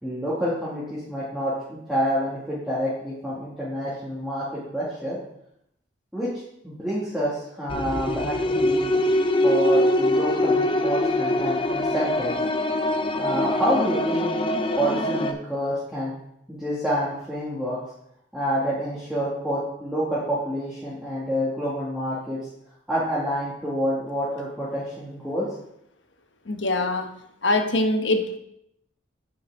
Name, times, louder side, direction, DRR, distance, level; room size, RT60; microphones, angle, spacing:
voice 1, 0.0-4.5 4.7-5.2 6.1-6.3 6.6-8.9 9.4-12.3 13.2-14.5 14.8-16.1 16.5-17.8 18.3-22.4 22.9-25.5, equal, 5° right, -10 dB, 2.2 m, -28 dB
sound 1, 7.7-15.3, left 1 dB, 25° left, 0.6 m, -23 dB
voice 2, 26.5-27.1 27.4-28.4, left 2 dB, 75° left, 6 dB, 1.1 m, -23 dB
9.0 x 8.2 x 3.7 m, 0.77 s
head